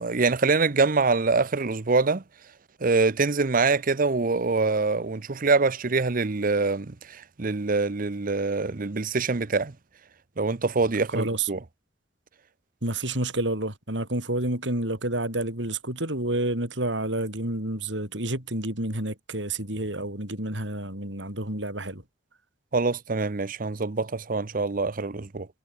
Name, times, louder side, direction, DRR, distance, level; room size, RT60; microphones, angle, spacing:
voice 1, 0.0-2.2 2.8-9.7 10.4-11.6 22.7-25.5, right 3 dB, 50° right, 0.8 m, -24 dB
voice 2, 11.1-11.5 12.8-22.0, right 1 dB, 80° right, 7.6 m, -29 dB
head